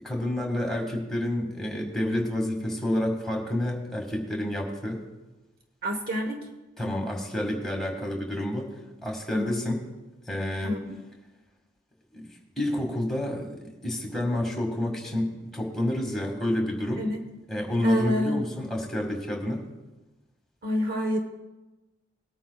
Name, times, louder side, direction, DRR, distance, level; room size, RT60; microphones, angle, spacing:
voice 1, 0.0-5.0 6.8-8.7 9.0-9.8 10.3-10.8 12.1-12.3 12.6-17.1 17.5-19.6, left 1 dB, ahead, 0 dB, 1.9 m, -29 dB
voice 2, 5.8-6.4 9.3-9.5 10.6-11.0 17.0-17.2 17.8-18.4 20.6-21.2, equal, 45° right, 4 dB, 1.0 m, -28 dB
20.0 x 9.0 x 2.4 m, 1.1 s
head